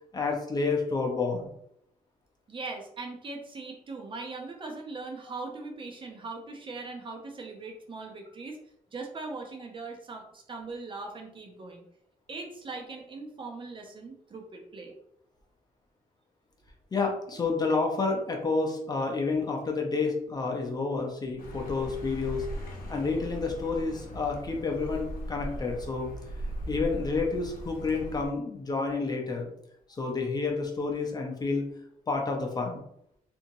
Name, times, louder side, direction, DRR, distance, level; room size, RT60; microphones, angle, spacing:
voice 1, 0.1-1.5 16.9-22.5 22.9-26.1 26.7-29.5 30.0-31.6 32.1-32.8, left 4 dB, 30° left, 1 dB, 0.6 m, -29 dB
voice 2, 2.5-8.6 8.9-11.8 12.3-14.9, right 3 dB, 35° right, 2 dB, 0.5 m, -40 dB
Accelerating revving vroom, 21.4-28.3, equal, 85° left, 0.7 m, -39 dB
2.8 x 2.6 x 2.6 m, 0.75 s
cardioid pair, 110°, 14 cm